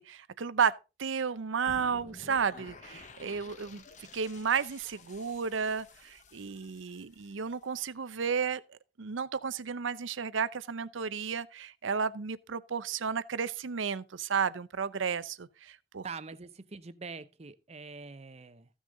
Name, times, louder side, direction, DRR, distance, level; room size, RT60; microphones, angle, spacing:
voice 1, 0.0-3.8 4.1-8.6 9.0-16.1, right 6 dB, 75° right, 0.6 m, -32 dB
sound 1, 1.7-7.7, left 3 dB, 40° left, 0.8 m, -52 dB
voice 2, 16.0-18.7, right 4 dB, 35° right, 0.6 m, -44 dB
14.5 x 6.3 x 3.8 m
head